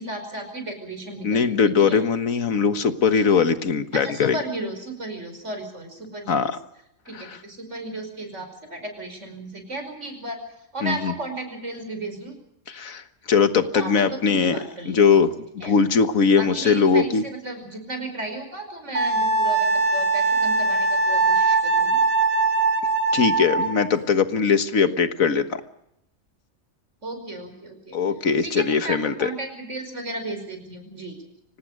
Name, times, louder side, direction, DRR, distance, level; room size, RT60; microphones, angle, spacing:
voice 1, 0.0-2.0 3.9-6.5 7.1-7.2 7.4-10.4 10.7-12.4 13.7-15.2 15.6-15.7 16.4-22.0 27.0-28.0 28.4-31.2, right 2 dB, 60° right, 6 dB, 5.6 m, -34 dB
voice 2, 1.2-4.4 6.3-6.6 7.1-7.4 10.8-11.1 12.7-13.0 13.3-14.6 14.8-17.2 23.1-25.6 27.9-29.3, left 5 dB, 90° left, 10 dB, 1.8 m, -20 dB
Wind instrument woodwind instrument, 18.9-23.8, right 3 dB, 80° right, 3.5 m, -21 dB
25.5 x 18.5 x 6.6 m, 0.79 s
omnidirectional pair, 1.4 m